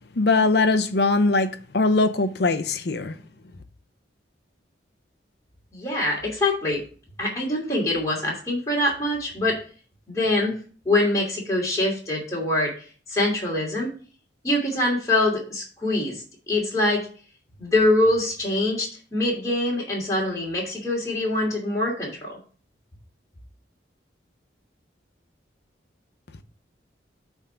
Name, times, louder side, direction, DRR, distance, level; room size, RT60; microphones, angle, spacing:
voice 1, 0.2-3.2, left 3 dB, 60° left, 0.7 m, -21 dB
voice 2, 5.7-6.8 7.2-9.6 10.1-10.5 10.8-12.7 13.1-13.9 14.4-17.1 17.6-22.4, left 1 dB, 15° left, 2.7 m, -24 dB
8.8 x 3.6 x 5.6 m
head